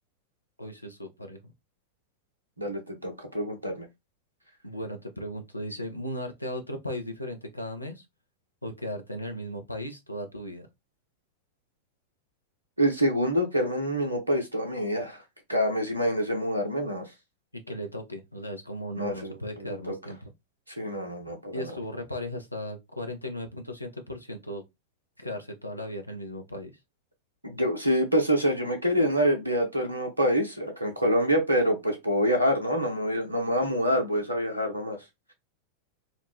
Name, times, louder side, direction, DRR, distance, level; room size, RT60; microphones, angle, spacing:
voice 1, 0.6-1.5 4.6-8.0 8.6-10.7 17.5-20.3 21.5-24.6 25.2-26.7, equal, 85° left, 0.5 m, -36 dB
voice 2, 2.6-3.9 12.8-15.2 15.5-17.0 18.9-19.3 19.6-19.9 20.8-21.6 27.4-35.0, equal, 85° right, 0.6 m, -26 dB
2.4 x 2.1 x 3.4 m
figure-of-eight pair, 90°, 0 cm